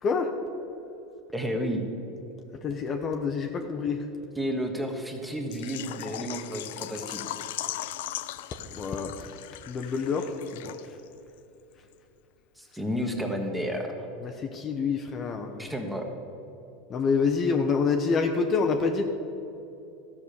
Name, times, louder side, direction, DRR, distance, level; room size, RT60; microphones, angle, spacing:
voice 1, 0.0-0.4 2.6-4.1 8.7-11.0 14.2-15.7 16.9-19.0, left 5 dB, 30° left, 4 dB, 0.8 m, -27 dB
voice 2, 1.3-1.8 4.4-7.2 12.6-14.1 15.6-16.0, equal, 5° right, 2 dB, 1.5 m, -31 dB
Water / Liquid, 5.5-11.1 11.4-11.5 11.9-12.0, left 14 dB, 75° left, 0.4 m, -38 dB
13.5 x 6.1 x 6.9 m, 2.9 s
supercardioid pair, 125°, 0 cm